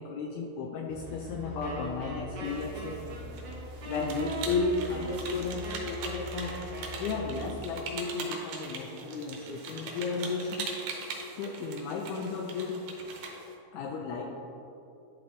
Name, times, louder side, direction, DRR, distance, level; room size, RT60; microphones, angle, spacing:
voice 1, 0.0-3.0 3.8-6.6 7.0-10.7 11.3-12.8 13.7-14.3, left 4 dB, 80° left, 0 dB, 1.8 m, -34 dB
sound 1, 0.9-7.6, equal, 45° right, 1.1 m, -43 dB
Wind instrument woodwind instrument, 1.6-7.6, right 2 dB, 65° right, 1.2 m, -42 dB
sound 2, 2.4-13.5, right 4 dB, 80° right, 2.4 m, -42 dB
10.5 x 3.6 x 3.6 m, 2.7 s
omnidirectional pair, 3.9 m